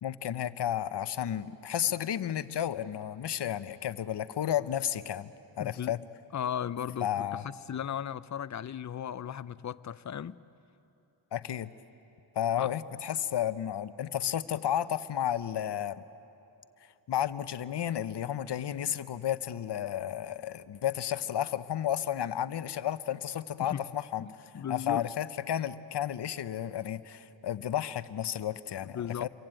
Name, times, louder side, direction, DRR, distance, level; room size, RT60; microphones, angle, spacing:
voice 1, 0.0-5.3 5.6-6.0 7.0-7.4 11.3-11.7 12.3-16.0 17.1-24.3 24.7-29.3, left 10 dB, 55° left, 0.9 m, -32 dB
voice 2, 5.6-6.0 6.3-10.4 12.6-12.7 23.6-23.8 24.2-25.1 28.9-29.3, left 9 dB, 35° left, 0.6 m, -36 dB
28.0 x 23.5 x 9.0 m
cardioid pair, 95°, 48 cm